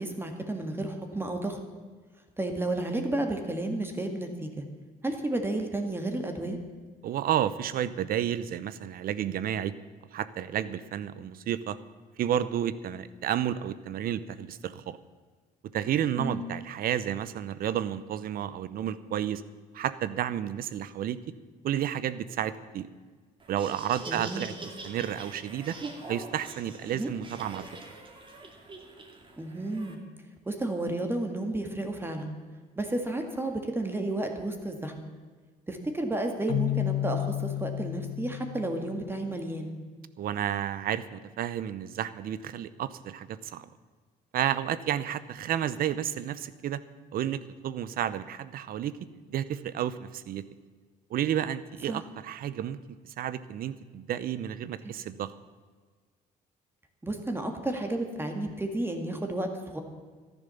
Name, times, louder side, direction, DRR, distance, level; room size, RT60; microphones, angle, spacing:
voice 1, 0.0-1.6 2.4-4.6 5.0-6.6 16.2-16.4 24.1-24.4 26.9-27.1 29.4-30.0 30.5-32.3 32.8-34.9 35.7-39.7 51.9-52.0 54.8-54.9 57.0-59.8, right 2 dB, 15° right, 4 dB, 1.9 m, -32 dB
voice 2, 7.0-9.7 10.1-11.8 12.2-15.0 15.7-19.4 19.7-21.2 21.6-22.9 23.5-25.8 26.1-27.8 40.2-43.7 44.3-46.8 47.1-48.9 49.3-50.4 51.1-52.8 53.2-55.3, right 10 dB, 60° right, 15 dB, 0.8 m, -31 dB
Laughter, 23.4-29.9, right 3 dB, 30° right, 2.4 m, -44 dB
Keyboard (musical), 36.5-39.4, left 13 dB, 65° left, 0.5 m, -32 dB
13.5 x 11.0 x 7.0 m, 1.5 s
cardioid pair, 110°, 17 cm